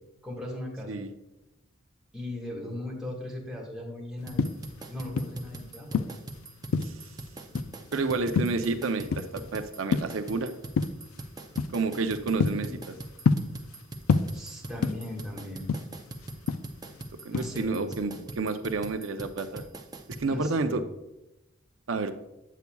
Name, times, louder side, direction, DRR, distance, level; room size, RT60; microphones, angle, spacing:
voice 1, 0.2-1.0 2.1-4.5 4.9-6.1 12.4-12.8 14.3-15.7 17.3-18.2 20.2-20.8, left 1 dB, 5° right, -3 dB, 1.5 m, -38 dB
sound 1, 4.2-5.5 5.9-7.1 7.5-7.9 8.4-9.5 9.7-10.3 10.8-11.1 11.6-11.8 12.2-13.8 14.1-15.2 15.5-17.0 17.3-17.7, left 5 dB, 85° left, 0.4 m, -27 dB
sound 2, 4.3-20.3, right 2 dB, 20° right, 0.4 m, -42 dB
voice 2, 7.9-10.5 11.7-12.7 17.2-19.6 20.2-20.8 21.9-22.2, right 3 dB, 70° right, 8 dB, 0.5 m, -30 dB
8.2 x 8.1 x 2.3 m, 0.94 s
head